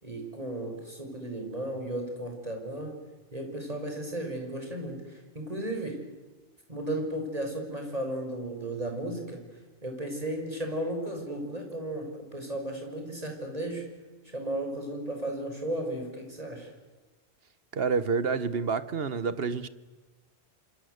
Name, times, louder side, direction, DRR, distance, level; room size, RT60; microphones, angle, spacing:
voice 1, 0.0-3.0 3.3-6.0 6.7-9.4 9.8-13.8 14.3-16.7, right 1 dB, 35° right, 6.3 m, -34 dB
voice 2, 17.7-19.7, right 5 dB, 65° right, 1.3 m, -28 dB
27.5 x 26.5 x 8.1 m
omnidirectional pair, 1.1 m